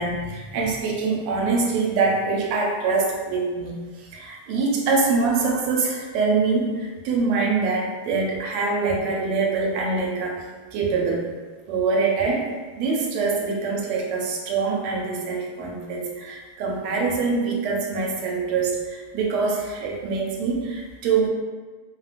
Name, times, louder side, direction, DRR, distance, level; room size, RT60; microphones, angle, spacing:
voice 1, 0.0-10.4 10.7-11.3 11.7-12.5 12.8-21.3, right 4 dB, 90° right, -1 dB, 1.5 m, -24 dB
3.4 x 2.1 x 2.4 m, 1.4 s
omnidirectional pair, 2.4 m